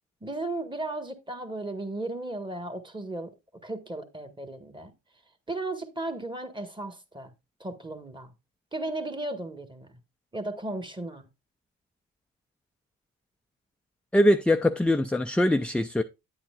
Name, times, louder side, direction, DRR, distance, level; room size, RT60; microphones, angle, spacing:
voice 1, 0.2-3.3 3.6-4.9 5.5-7.3 7.6-8.3 8.7-10.0 10.3-11.3, right 2 dB, 15° right, 1.5 m, -35 dB
voice 2, 14.1-16.0, left 1 dB, 5° left, 0.4 m, -22 dB
9.4 x 8.7 x 2.4 m
cardioid pair, 90°, 30 cm